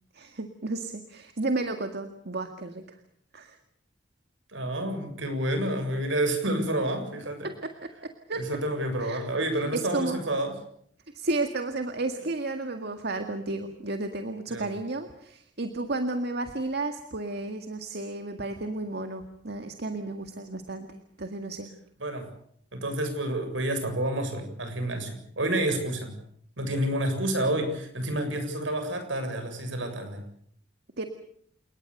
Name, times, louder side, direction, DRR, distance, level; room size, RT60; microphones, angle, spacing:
voice 1, 0.1-3.0 3.3-3.6 7.4-8.4 9.0-9.3 9.7-10.2 11.1-21.7 31.0-31.1, right 2 dB, 60° right, 6 dB, 2.0 m, -32 dB
voice 2, 4.5-7.5 8.4-10.5 14.5-14.7 22.0-22.3 22.7-26.1 26.6-30.2, right 1 dB, 75° right, 7 dB, 7.4 m, -29 dB
29.5 x 19.5 x 6.7 m, 0.66 s
head